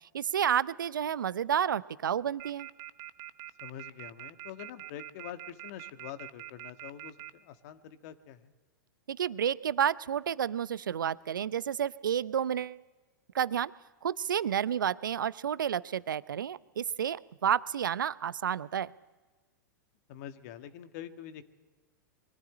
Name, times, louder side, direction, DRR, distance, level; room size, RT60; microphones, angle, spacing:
voice 1, 0.1-2.7 9.1-12.8 13.3-13.7 14.0-18.9, right 9 dB, 75° right, 19 dB, 0.6 m, -30 dB
sound 1, 2.4-7.3, right 15 dB, 40° right, 0.8 m, -43 dB
voice 2, 3.6-8.5 20.1-21.4, left 10 dB, 55° left, 9 dB, 1.6 m, -45 dB
23.0 x 13.5 x 9.7 m, 1.3 s
hypercardioid pair, 100°, 11 cm